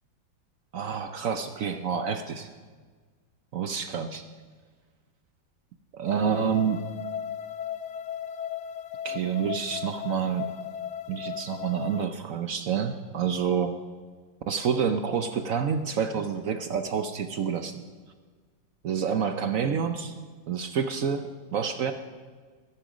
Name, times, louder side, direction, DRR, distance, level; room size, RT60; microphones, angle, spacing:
voice 1, 0.7-2.5 3.5-4.2 5.9-6.8 9.0-10.5 11.1-13.8 14.5-17.8 18.8-20.1 20.5-21.9, right 7 dB, 60° right, 8 dB, 0.9 m, -28 dB
sound 1, 6.1-12.0, left 9 dB, 70° left, 1.2 m, -36 dB
22.0 x 10.0 x 5.0 m, 1.5 s
omnidirectional pair, 2.0 m